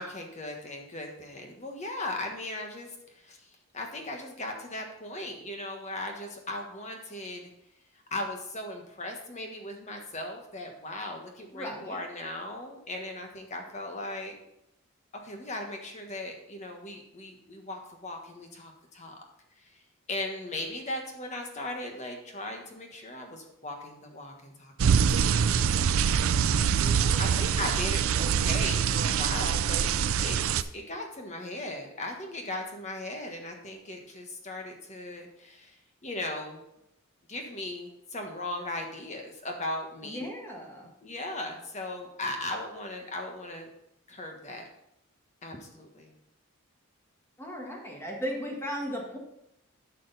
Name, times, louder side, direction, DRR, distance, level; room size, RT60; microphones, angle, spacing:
voice 1, 0.0-7.5 8.1-14.4 15.2-19.2 19.6-19.8 20.1-26.2 27.2-29.9 30.2-35.8 36.0-36.6 37.3-40.3 41.0-43.7 44.1-44.6 45.4-46.1, left 1 dB, 30° left, 3 dB, 1.4 m, -38 dB
voice 2, 11.5-12.0 26.8-27.4 40.0-40.9 47.4-49.2, equal, 10° left, -1 dB, 1.7 m, -37 dB
sound 1, 24.8-30.6, right 7 dB, 70° right, 0.4 m, -24 dB
11.5 x 6.2 x 4.1 m, 0.82 s
head